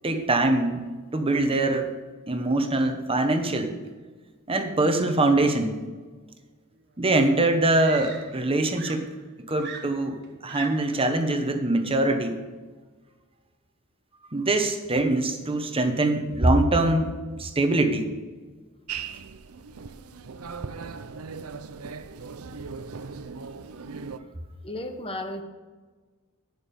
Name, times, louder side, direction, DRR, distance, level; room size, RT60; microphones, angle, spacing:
voice 1, 0.0-0.8 1.1-1.9 2.3-3.8 4.5-5.8 7.0-9.1 9.5-10.2 10.4-12.4 14.3-18.1, right 2 dB, 25° right, 6 dB, 1.1 m, -23 dB
Screaming, 6.9-7.0 7.7-8.5 8.7-11.0 12.0-12.3, right 6 dB, 50° right, 1.3 m, -40 dB
sound 1, 18.9-24.2, right 5 dB, 80° right, 0.6 m, -38 dB
voice 2, 24.6-25.4, left 1 dB, 25° left, 6 dB, 0.9 m, -33 dB
11.0 x 9.6 x 5.4 m, 1.3 s
head